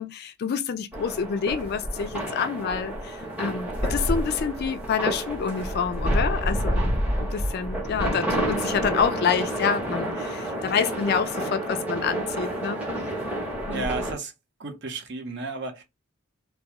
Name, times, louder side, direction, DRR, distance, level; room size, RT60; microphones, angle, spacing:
voice 1, 0.0-6.8 7.2-12.8 13.7-13.9, left 6 dB, 50° left, 0.3 m, -27 dB
sound 1, 0.9-14.1, right 1 dB, 5° right, 0.7 m, -29 dB
voice 2, 13.7-14.3 14.6-15.8, right 3 dB, 60° right, 0.7 m, -33 dB
2.3 x 2.2 x 2.8 m
head